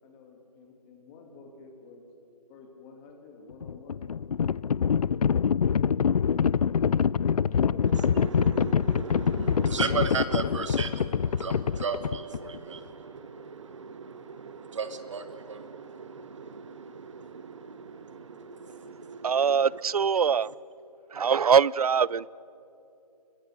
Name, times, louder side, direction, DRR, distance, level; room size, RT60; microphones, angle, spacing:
voice 1, 0.0-2.1 2.5-4.0 6.5-9.6, left 3 dB, 20° left, 2.8 m, -49 dB
Livestock farm animals working animals, 3.5-12.6, left 7 dB, 65° left, 0.5 m, -25 dB
voice 2, 7.9-19.8 21.1-21.4, right 5 dB, 50° right, 1.1 m, -36 dB
voice 3, 19.2-20.5 21.1-22.3, right 6 dB, 70° right, 0.5 m, -23 dB
28.5 x 21.5 x 6.7 m
figure-of-eight pair, 155°, 20 cm